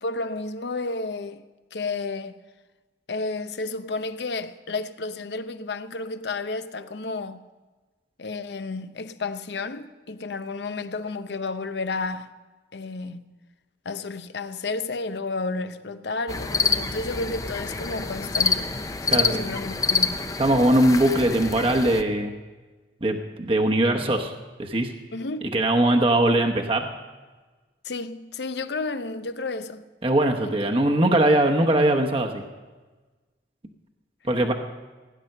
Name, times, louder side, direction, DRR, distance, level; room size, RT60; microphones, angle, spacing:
voice 1, 0.0-1.4 1.7-2.4 3.1-7.4 8.2-12.3 12.7-13.4 13.8-18.7 19.1-20.3 25.1-25.5 27.8-29.8 30.7-30.8, left 3 dB, 75° left, 0.7 m, -31 dB
sound 1, 16.3-22.0, left 4 dB, 20° left, 0.6 m, -27 dB
voice 2, 20.4-22.3 23.0-24.3 24.6-24.9 25.5-26.9 30.0-32.4 34.3-34.5, right 1 dB, 30° right, 0.9 m, -21 dB
16.5 x 10.0 x 6.6 m
head